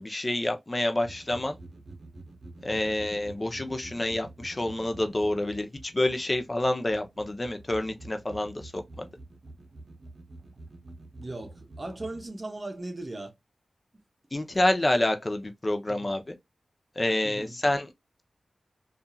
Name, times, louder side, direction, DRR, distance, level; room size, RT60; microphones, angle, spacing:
voice 1, 0.0-1.6 2.6-5.7 5.9-9.1 14.3-16.2 17.0-17.9, left 1 dB, 35° left, 0.7 m, -28 dB
sound 1, 1.0-12.3, right 2 dB, 65° right, 0.6 m, -48 dB
voice 2, 11.2-13.3 15.9-16.1 17.2-17.6, right 2 dB, 35° right, 0.8 m, -38 dB
2.6 x 2.4 x 2.3 m
cardioid pair, 45°, 0 cm